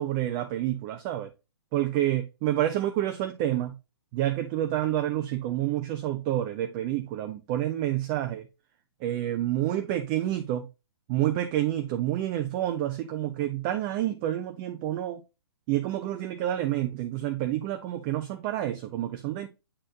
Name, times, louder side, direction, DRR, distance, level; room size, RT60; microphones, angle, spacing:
voice 1, 0.0-1.3 1.7-3.7 4.1-8.5 9.0-10.7 11.1-15.2 15.7-19.5, right 13 dB, 30° right, 0.6 m, -28 dB
8.6 x 4.2 x 2.8 m
figure-of-eight pair, 120°, 13 cm